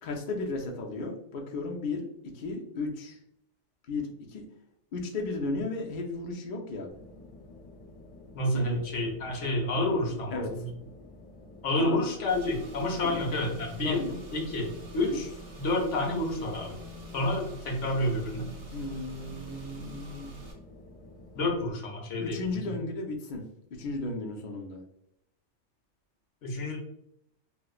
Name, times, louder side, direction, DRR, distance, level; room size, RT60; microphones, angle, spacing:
voice 1, 0.0-2.1 2.3-3.2 3.9-4.4 4.9-6.9 8.5-8.8 10.3-10.5 11.8-12.0 13.0-13.2 13.8-14.2 15.1-15.2 18.7-20.3 22.2-23.4 23.8-24.8, left 3 dB, 55° left, 1 dB, 0.6 m, -34 dB
sound 1, 6.9-21.7, left 2 dB, 25° left, 1.4 m, -50 dB
voice 2, 8.3-10.7 11.6-14.0 14.3-15.3 15.6-16.8 17.1-18.5 21.3-22.4 22.7-22.8 26.4-26.8, left 1 dB, 70° left, 1 dB, 1.1 m, -29 dB
Car / Engine, 12.3-20.5, right 2 dB, 85° right, 1.3 m, -46 dB
4.2 x 2.0 x 2.4 m, 0.76 s
omnidirectional pair, 1.3 m